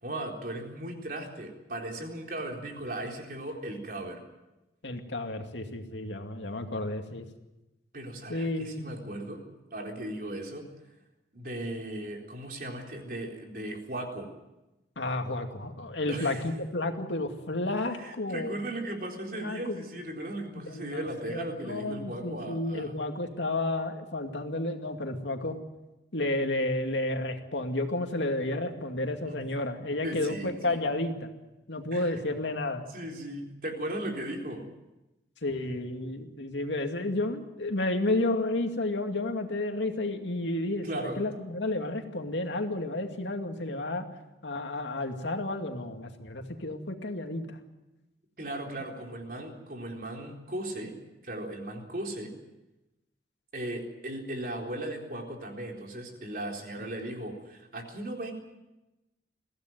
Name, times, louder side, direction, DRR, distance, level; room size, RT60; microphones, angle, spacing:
voice 1, 0.0-4.2 7.9-9.4 9.7-10.7 11.3-14.3 16.1-16.4 17.8-22.9 29.2-29.5 30.0-30.8 31.9-32.4 32.9-34.6 40.8-41.2 48.4-50.9 51.2-52.3 53.5-58.3, right 1 dB, 50° right, 1 dB, 3.9 m, -37 dB
voice 2, 4.8-7.2 8.3-8.9 15.0-18.6 19.3-19.8 20.7-25.6 26.1-31.3 31.7-32.8 35.4-44.0 44.4-47.6 49.3-49.4, left 2 dB, 80° left, 5 dB, 2.4 m, -31 dB
22.5 x 16.0 x 9.3 m, 1.0 s
head